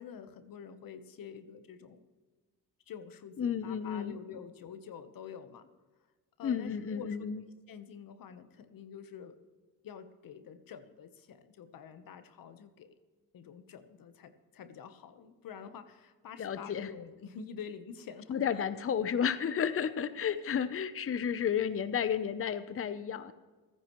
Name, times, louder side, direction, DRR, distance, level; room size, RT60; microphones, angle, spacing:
voice 1, 0.0-2.0 2.9-5.7 6.4-9.4 9.8-13.0 13.3-18.6 20.3-20.4, left 7 dB, 70° left, 10 dB, 1.2 m, -47 dB
voice 2, 3.4-4.1 6.4-7.4 16.4-16.9 18.3-23.3, left 8 dB, 40° left, 13 dB, 0.7 m, -32 dB
29.0 x 10.0 x 3.1 m, 1.3 s
cardioid pair, 80°, 35 cm